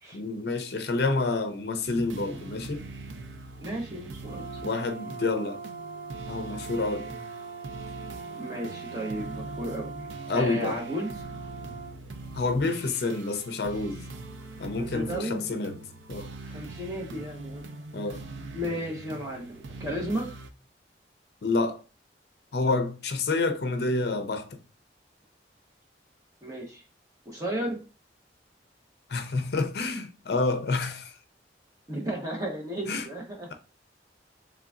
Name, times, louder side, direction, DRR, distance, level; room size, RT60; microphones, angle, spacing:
voice 1, 0.1-2.8 4.6-5.6 6.3-7.1 10.3-10.8 12.3-14.1 14.6-15.8 16.1-16.3 17.9-18.2 21.4-21.8 22.5-24.5 29.1-31.1 32.9-33.0, left 3 dB, 60° left, 0.5 m, -28 dB
sound 1, 1.9-20.5, right 3 dB, 85° right, 0.4 m, -42 dB
voice 2, 3.6-4.6 8.3-11.1 14.8-15.6 16.4-17.6 18.5-20.4 26.4-26.8 27.2-27.8 31.9-33.5, right 1 dB, 20° right, 0.9 m, -34 dB
Brass instrument, 4.2-12.0, right 4 dB, 35° right, 0.5 m, -41 dB
3.8 x 3.4 x 2.4 m
head